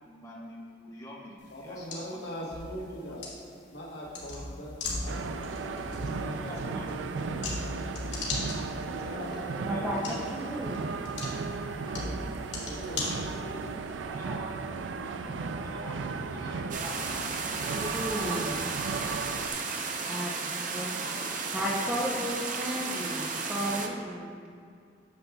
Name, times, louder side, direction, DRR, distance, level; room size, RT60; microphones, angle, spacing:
voice 1, 0.0-2.5 3.0-3.2 5.6-5.7 6.4-7.0 9.7-10.2 14.1-14.5 15.0-18.1 20.7-21.6 22.5-23.1, left 1 dB, 20° left, -4 dB, 1.2 m, -47 dB
sound 1, 1.4-13.7, left 2 dB, 75° left, 1.8 m, -39 dB
voice 2, 1.5-3.3 3.7-7.8 8.6-10.3 12.6-14.2, equal, 60° left, -3 dB, 1.2 m, -42 dB
sound 2, 5.1-19.5, right 4 dB, 85° right, 0.4 m, -35 dB
voice 3, 9.7-10.8 17.7-18.6 20.1-20.9 21.5-24.4, equal, 5° right, -4 dB, 0.7 m, -33 dB
sound 3, 16.7-23.9, right 4 dB, 45° right, 0.6 m, -34 dB
9.3 x 7.3 x 2.3 m, 2.3 s
head